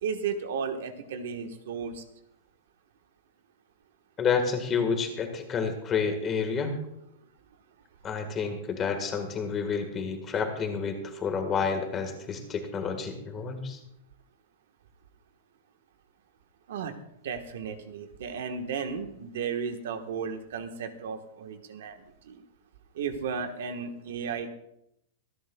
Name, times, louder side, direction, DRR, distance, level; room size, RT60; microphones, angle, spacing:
voice 1, 0.0-2.0 16.7-16.9 17.2-22.0 22.3-22.4 22.9-24.5, right 6 dB, 65° right, 7 dB, 1.3 m, -34 dB
voice 2, 4.2-6.8 8.0-13.8, left 5 dB, 15° left, 5 dB, 1.6 m, -29 dB
25.5 x 10.5 x 2.3 m, 0.79 s
supercardioid pair, 170°, 0 cm